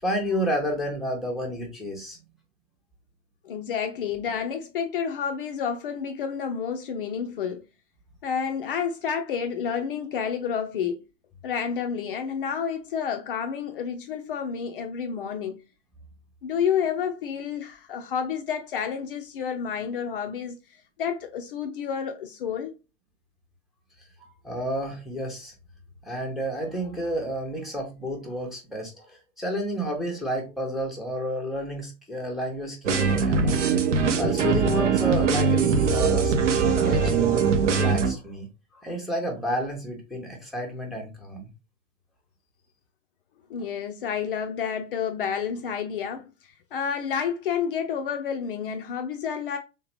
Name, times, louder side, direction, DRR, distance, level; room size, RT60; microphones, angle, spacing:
voice 1, 0.0-2.2 24.4-25.5 26.0-33.6 34.2-36.3 36.8-37.3 37.7-38.5 38.8-41.5, equal, ahead, 0.7 m, -30 dB
voice 2, 3.4-7.6 8.2-11.0 11.4-15.6 16.4-20.6 21.0-22.7 43.5-49.6, left 7 dB, 45° left, 0.5 m, -30 dB
sound 1, 32.8-38.1, right 5 dB, 70° right, 0.7 m, -22 dB
3.4 x 2.9 x 3.0 m
figure-of-eight pair, 95°, 38 cm